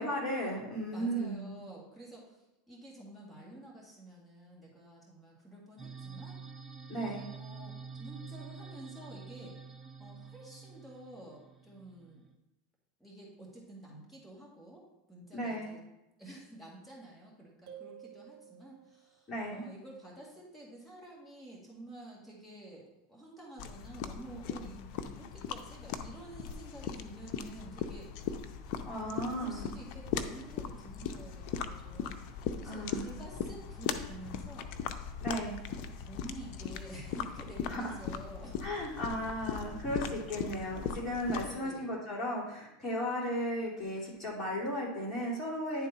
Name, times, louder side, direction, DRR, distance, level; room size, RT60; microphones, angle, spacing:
voice 1, 0.0-1.6 6.9-7.2 15.3-15.7 19.3-19.7 28.8-29.7 32.6-33.2 35.2-35.6 37.7-38.0 38.6-45.9, equal, 20° left, -5 dB, 2.8 m, -35 dB
voice 2, 0.9-6.4 7.2-12.2 13.0-15.8 16.2-28.3 29.1-38.7 41.3-42.0, right 1 dB, ahead, -5 dB, 2.0 m, -50 dB
sound 1, 5.8-12.3, right 5 dB, 15° right, 0.8 m, -48 dB
sound 2, 17.7-19.1, right 10 dB, 55° right, 1.6 m, -51 dB
sound 3, 23.6-41.6, left 7 dB, 55° left, 0.6 m, -39 dB
10.0 x 3.8 x 4.2 m, 0.93 s
supercardioid pair, 125°, 0 cm